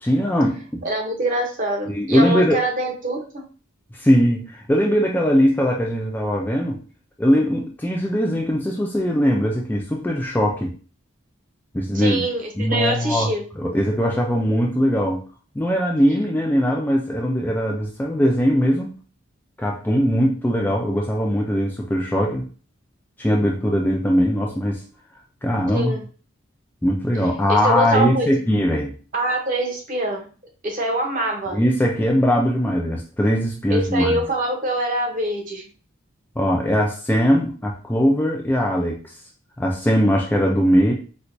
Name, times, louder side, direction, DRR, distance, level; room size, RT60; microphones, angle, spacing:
voice 1, 0.0-0.8 1.9-2.6 3.9-6.8 7.2-10.7 11.7-12.2 12.6-15.2 15.6-18.9 19.6-22.4 23.2-24.8 25.4-26.0 26.8-28.9 31.5-34.2 36.4-39.2 39.6-40.9, equal, 10° left, 0 dB, 0.3 m, -20 dB
voice 2, 0.8-3.2 11.9-13.4 25.7-26.0 27.5-28.3 29.1-30.2 30.6-31.6 33.7-35.6, right 1 dB, 40° right, 1 dB, 0.8 m, -24 dB
4.3 x 2.2 x 2.6 m, 0.38 s
head